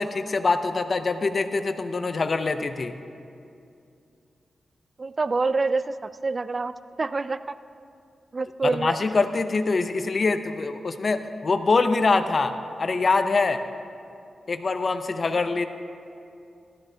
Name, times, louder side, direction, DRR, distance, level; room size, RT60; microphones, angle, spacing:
voice 1, 0.0-3.0 8.6-13.6 14.5-15.7, left 3 dB, 55° left, 9 dB, 0.6 m, -24 dB
voice 2, 5.0-6.7 7.0-7.6 8.3-9.0 15.4-15.6, right 3 dB, 45° right, 14 dB, 0.3 m, -26 dB
13.5 x 12.0 x 2.8 m, 2.5 s
cardioid pair, 45°, 0 cm